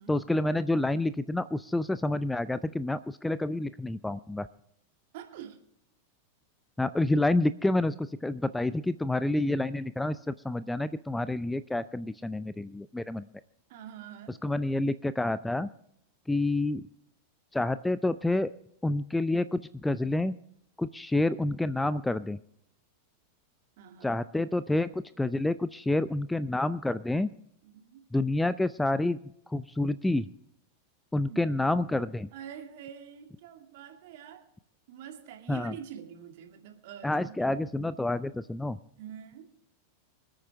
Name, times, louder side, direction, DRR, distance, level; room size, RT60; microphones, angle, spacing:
voice 1, 0.1-4.5 6.8-13.2 14.4-15.7 16.3-16.8 17.5-18.5 18.8-20.3 20.8-22.4 24.0-27.3 28.1-29.2 29.5-30.3 31.1-32.3 35.5-35.7 37.0-38.8, left 2 dB, 5° left, 16 dB, 0.4 m, -28 dB
voice 2, 5.1-5.6 13.7-14.4 23.8-24.2 27.6-28.0 31.3-31.8 32.3-34.5 34.9-37.5 39.0-39.5, right 9 dB, 50° right, 4 dB, 2.4 m, -45 dB
25.5 x 8.9 x 3.4 m, 0.73 s
figure-of-eight pair, 90°, 0 cm